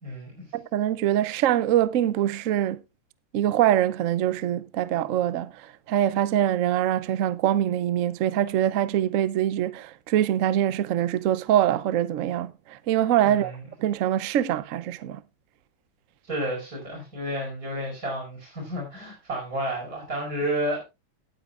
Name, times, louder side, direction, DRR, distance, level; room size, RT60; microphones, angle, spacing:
voice 1, 0.0-0.5 13.2-13.6 16.3-20.8, right 1 dB, 45° right, 5.7 m, -31 dB
voice 2, 0.5-2.8 3.3-5.5 5.9-13.5 13.8-15.2, right 11 dB, 70° right, 0.7 m, -24 dB
19.0 x 8.5 x 2.4 m
omnidirectional pair, 2.1 m